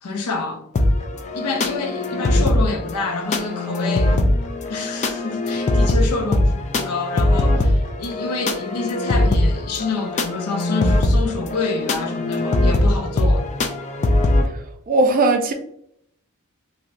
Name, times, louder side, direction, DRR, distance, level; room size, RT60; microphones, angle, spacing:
voice 1, 0.0-0.7 1.3-4.2 4.7-13.5, left 3 dB, 85° left, 0.6 m, -27 dB
sound 1, 0.7-14.5, left 1 dB, 30° left, 0.4 m, -21 dB
voice 2, 14.5-15.5, right 2 dB, 40° right, 0.4 m, -19 dB
3.2 x 2.7 x 2.5 m
head